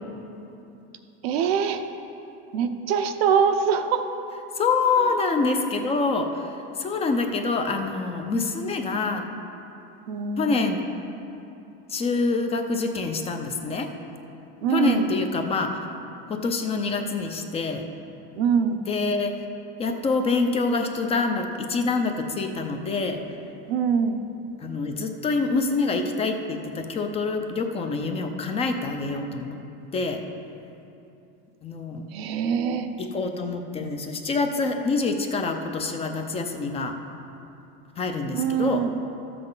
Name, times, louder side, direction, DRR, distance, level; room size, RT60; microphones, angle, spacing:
voice 1, 1.2-1.8 2.5-4.1 10.1-10.7 14.6-15.1 18.3-18.8 23.7-24.2 32.1-32.9 38.3-38.9, right 7 dB, 85° right, 7 dB, 0.8 m, -23 dB
voice 2, 4.5-9.3 10.4-10.8 11.9-13.9 14.7-15.7 16.3-17.8 18.9-19.3 19.8-23.2 24.6-29.6 29.9-30.2 31.6-32.1 33.0-36.9 38.0-38.8, left 3 dB, 20° left, 5 dB, 0.6 m, -26 dB
13.0 x 7.7 x 3.9 m, 2.9 s
supercardioid pair, 150°, 30 cm